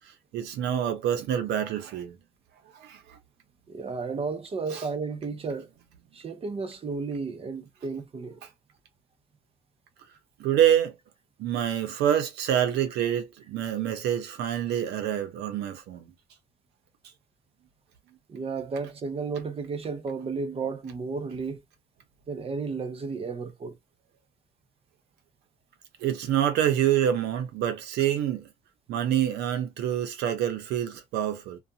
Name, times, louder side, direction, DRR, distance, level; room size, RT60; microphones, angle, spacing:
voice 1, 0.3-2.2 2.7-3.2 4.7-4.9 10.4-10.9 11.4-16.1 26.0-28.5 28.9-31.6, right 10 dB, 80° right, 0.8 m, -26 dB
voice 2, 3.7-5.7 6.1-8.4 18.3-21.6 22.3-23.7, right 4 dB, 35° right, 0.9 m, -33 dB
2.6 x 2.4 x 2.7 m
cardioid pair, 110°, 17 cm